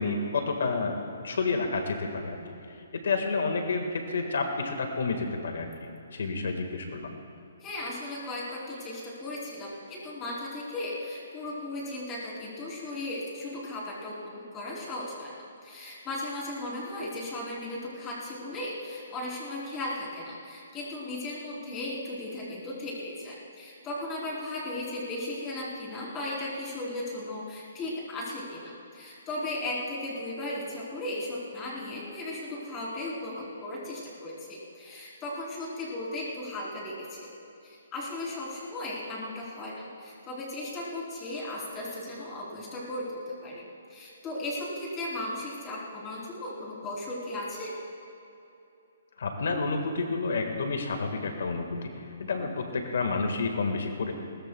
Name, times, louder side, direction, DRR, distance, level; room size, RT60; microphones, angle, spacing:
voice 1, 0.0-2.4 2.7-5.7 6.1-7.1 49.2-51.9 52.2-54.1, left 4 dB, 75° left, 4 dB, 1.6 m, -30 dB
voice 2, 7.6-15.3 15.6-37.3 37.6-43.6 43.9-47.7, left 1 dB, 15° left, -5 dB, 3.3 m, -36 dB
21.0 x 19.0 x 2.3 m, 2.8 s
hypercardioid pair, 165°, 0 cm